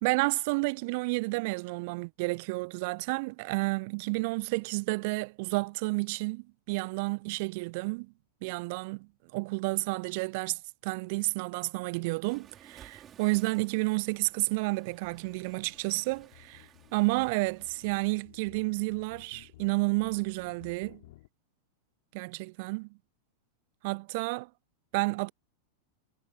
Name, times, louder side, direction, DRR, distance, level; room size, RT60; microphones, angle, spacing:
voice 1, 0.0-8.1 8.4-21.0 22.1-22.9 23.8-24.5 24.9-25.3, right 27 dB, 50° right, 0.5 m, -31 dB
Waves surf, 12.2-18.2, right 9 dB, 25° right, 5.1 m, -58 dB
sound 1, 14.9-21.3, left 18 dB, 55° left, 7.9 m, -56 dB
figure-of-eight pair, 90°, 0 cm